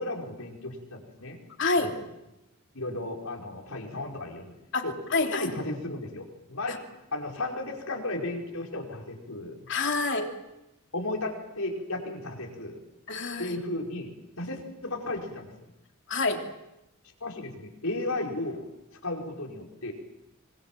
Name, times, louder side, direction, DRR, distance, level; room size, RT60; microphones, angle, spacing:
voice 1, 0.0-1.4 1.8-1.9 2.7-4.5 4.8-6.9 7.1-9.6 10.9-12.8 13.4-14.1 14.4-15.7 17.2-18.7 19.0-19.9, left 2 dB, 80° left, 1 dB, 5.4 m, -34 dB
voice 2, 1.6-2.0 4.7-4.8 5.1-5.5 6.7-6.8 9.7-10.3 13.1-13.6 16.1-16.4, left 3 dB, 55° left, 3 dB, 3.1 m, -27 dB
25.5 x 24.5 x 7.7 m, 0.90 s
head